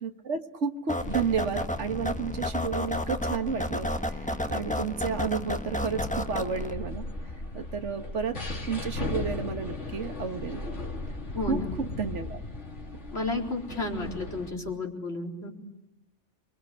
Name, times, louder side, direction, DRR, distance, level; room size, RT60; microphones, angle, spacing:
voice 1, 0.0-7.1 7.5-8.4 8.7-10.6 11.5-12.4, right 6 dB, 80° right, 7 dB, 1.8 m, -32 dB
sound 1, 0.9-6.7, left 1 dB, 5° left, 1.1 m, -32 dB
sound 2, 1.0-14.5, left 2 dB, 80° left, 3.3 m, -38 dB
voice 2, 11.3-11.7 13.1-15.5, left 3 dB, 60° left, 0 dB, 4.5 m, -32 dB
28.5 x 22.5 x 9.1 m, 0.90 s
omnidirectional pair, 1.2 m